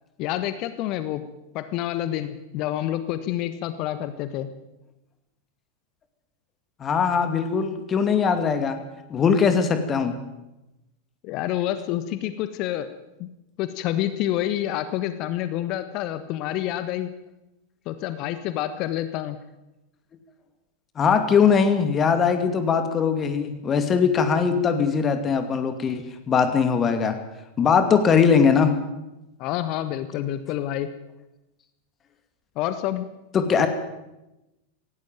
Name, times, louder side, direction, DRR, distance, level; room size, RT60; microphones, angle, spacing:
voice 1, 0.2-1.2 1.5-4.5 11.2-12.9 13.2-13.3 13.6-17.1 17.8-19.4 29.4-30.9 32.5-33.1, left 12 dB, 40° left, 11 dB, 1.4 m, -28 dB
voice 2, 6.8-8.8 9.1-10.1 21.0-27.2 27.6-28.8 33.3-33.7, left 6 dB, 25° left, 8 dB, 2.4 m, -21 dB
18.0 x 17.5 x 9.1 m, 0.96 s
figure-of-eight pair, 90°, 0 cm